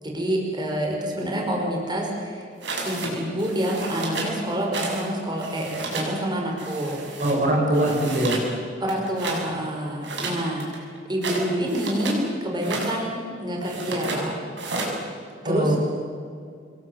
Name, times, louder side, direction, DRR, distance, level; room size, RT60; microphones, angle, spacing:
voice 1, 0.0-2.5 2.8-7.0 8.8-14.3 15.4-15.8, equal, 25° right, 0 dB, 5.2 m, -27 dB
sound 1, 2.6-3.1 3.4-4.3 4.7-5.1 5.3-6.1 6.6-7.4 7.7-8.5 8.8-9.4 10.0-12.2 12.5-12.9 13.6-14.2 14.6-15.0, right 3 dB, 70° right, 7.3 m, -32 dB
voice 2, 7.2-8.4 15.4-15.8, right 1 dB, 45° right, 0 dB, 5.0 m, -21 dB
27.0 x 22.5 x 8.0 m, 2.3 s
head